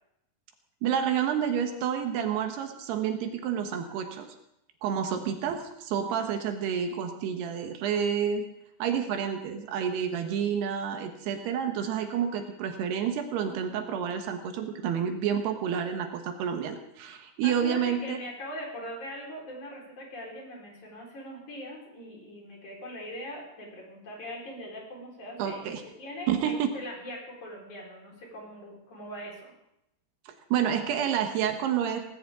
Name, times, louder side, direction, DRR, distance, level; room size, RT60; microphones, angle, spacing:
voice 1, 0.8-4.3 4.8-8.4 8.8-18.2 25.4-25.8 26.3-26.7 30.5-32.0, right 8 dB, 80° right, 5 dB, 3.3 m, -29 dB
voice 2, 17.4-25.7 26.0-29.5, left 1 dB, 50° left, -2 dB, 5.7 m, -41 dB
18.5 x 18.0 x 3.7 m, 0.82 s
omnidirectional pair, 4.6 m